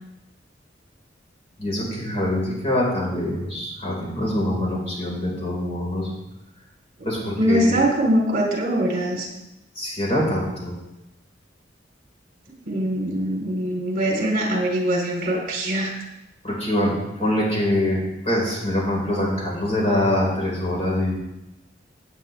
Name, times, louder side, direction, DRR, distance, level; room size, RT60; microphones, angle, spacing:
voice 1, 1.6-6.1 7.0-7.8 9.8-10.7 16.4-16.9 17.2-18.0 18.2-21.1, left 1 dB, 35° left, -3 dB, 4.4 m, -24 dB
voice 2, 7.4-9.3 12.7-15.9, right 1 dB, 50° right, -1 dB, 3.7 m, -22 dB
17.0 x 8.7 x 3.5 m, 0.91 s
head